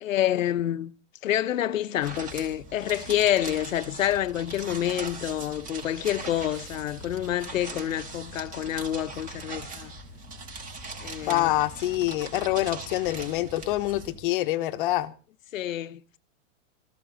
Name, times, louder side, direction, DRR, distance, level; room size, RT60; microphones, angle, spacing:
voice 1, 0.0-0.9 1.2-9.9 11.0-11.5 15.5-16.2, left 12 dB, 85° left, 1.1 m, -28 dB
sound 1, 2.0-14.2, right 3 dB, 20° right, 4.1 m, -40 dB
voice 2, 11.3-15.1, left 16 dB, 45° left, 1.2 m, -26 dB
19.0 x 15.0 x 4.0 m
hypercardioid pair, 155°, 38 cm